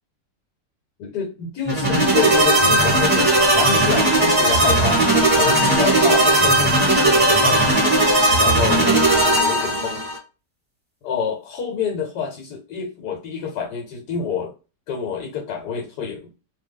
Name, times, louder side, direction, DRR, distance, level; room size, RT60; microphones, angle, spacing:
voice 1, 1.0-5.0 5.3-7.7 8.4-10.0 11.0-14.5 14.9-16.4, left 6 dB, 75° left, 1.3 m, -27 dB
sound 1, 1.7-10.2, right 1 dB, 5° right, 1.0 m, -17 dB
2.7 x 2.2 x 3.5 m
omnidirectional pair, 1.8 m